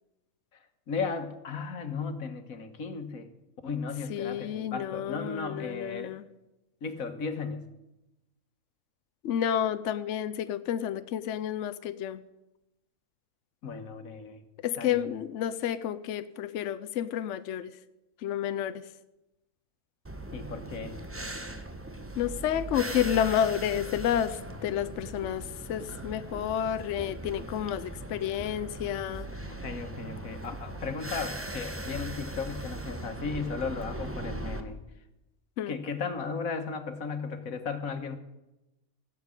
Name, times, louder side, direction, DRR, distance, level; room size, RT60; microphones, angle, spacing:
voice 1, 0.9-3.3 3.6-6.1 6.8-7.6 13.6-14.4 14.8-15.1 20.3-21.0 29.5-34.8 35.7-38.2, left 5 dB, 85° left, 8 dB, 1.7 m, -35 dB
voice 2, 4.1-6.2 9.2-12.2 14.6-17.7 18.2-18.9 22.2-29.3 35.6-35.7, left 10 dB, 65° left, 13 dB, 0.9 m, -30 dB
sound 1, 20.0-34.6, right 1 dB, 10° right, 1.0 m, -39 dB
15.5 x 7.5 x 8.9 m, 0.96 s
omnidirectional pair, 1.4 m